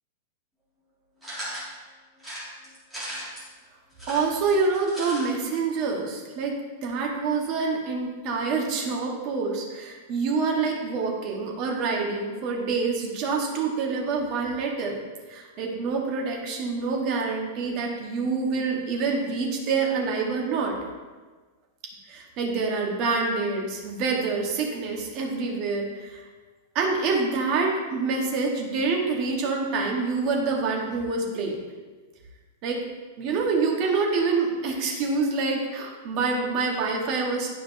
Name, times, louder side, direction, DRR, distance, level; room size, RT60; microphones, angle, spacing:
sound 1, 1.2-1.7 2.2-3.5 3.9-5.3 5.5-5.6 5.9-6.0, equal, ahead, 2.0 m, -37 dB
voice 1, 4.1-6.6 6.8-15.0 15.3-20.8 22.1-26.2 26.7-31.6 32.6-32.8 33.2-37.5, right 4 dB, 30° right, 0 dB, 1.1 m, -26 dB
11.0 x 5.0 x 2.6 m, 1.4 s
supercardioid pair, 175°, 0 cm